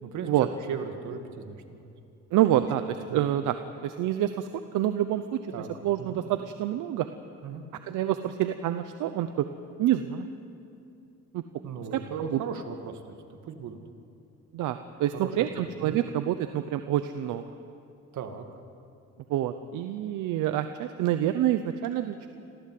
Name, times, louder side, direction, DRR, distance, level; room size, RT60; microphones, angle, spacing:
voice 1, 0.0-1.9 2.5-3.3 5.5-5.7 6.0-6.2 7.4-7.7 11.6-13.8 15.1-16.0 18.1-18.5, right 6 dB, 75° right, 6 dB, 2.1 m, -37 dB
voice 2, 2.3-3.6 3.8-5.4 5.8-7.1 7.9-9.5 9.8-10.3 11.3-11.4 12.3-12.4 14.5-17.4 19.3-22.3, right 12 dB, 90° right, 9 dB, 0.8 m, -27 dB
26.5 x 16.0 x 7.8 m, 2.7 s
cardioid pair, 90°, 30 cm